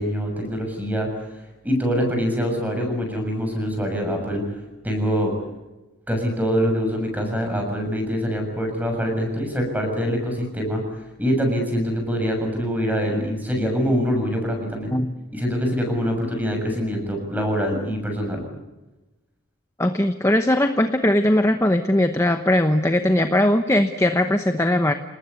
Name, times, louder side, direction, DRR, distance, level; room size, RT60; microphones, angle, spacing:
voice 1, 0.0-1.4 1.6-5.3 6.1-14.9 15.3-18.4, equal, 5° right, 3 dB, 6.9 m, -24 dB
voice 2, 19.8-24.9, left 1 dB, 15° left, 7 dB, 0.9 m, -19 dB
28.5 x 19.5 x 8.4 m, 1.1 s
head